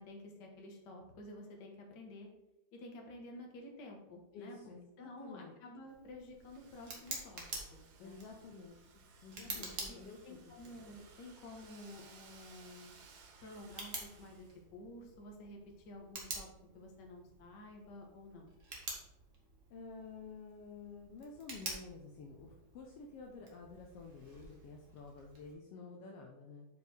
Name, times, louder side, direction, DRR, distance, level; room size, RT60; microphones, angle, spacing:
voice 1, 0.0-2.3 2.7-7.4 7.7-8.2 9.3-12.9 13.4-15.6 15.8-16.5 16.7-18.5, left 1 dB, 50° left, 1 dB, 1.4 m, -51 dB
voice 2, 4.3-5.5 8.0-8.8 9.2-10.6 19.7-26.7, left 4 dB, 80° left, 1 dB, 1.3 m, -51 dB
Tick, 5.9-25.5, right 2 dB, 45° right, 1.0 m, -50 dB
Domestic sounds home sounds, 6.4-14.6, right 5 dB, 85° right, 2.8 m, -61 dB
6.4 x 5.1 x 5.0 m, 0.92 s
omnidirectional pair, 3.7 m